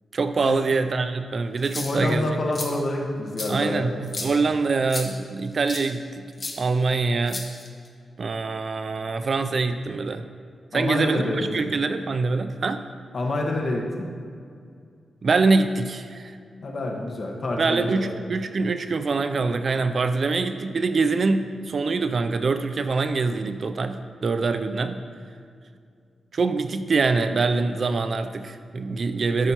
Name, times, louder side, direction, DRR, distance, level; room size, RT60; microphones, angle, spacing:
voice 1, 0.1-2.3 3.5-6.2 6.6-7.4 8.2-10.2 10.7-12.8 15.2-16.3 17.6-25.0 26.3-29.5, right 4 dB, 45° right, 9 dB, 0.4 m, -24 dB
sound 1, 1.6-2.1 2.5-2.7 3.4-3.5 4.1-4.3 4.9-5.1 5.7-5.9 6.4-6.5 7.3-7.9, left 2 dB, 30° left, 1.1 m, -33 dB
voice 2, 1.8-3.9 4.2-4.4 10.7-11.7 13.1-14.0 16.6-18.1, left 1 dB, 50° left, 0 dB, 1.3 m, -27 dB
13.5 x 6.5 x 2.9 m, 2.2 s
wide cardioid pair, 135°, 0 cm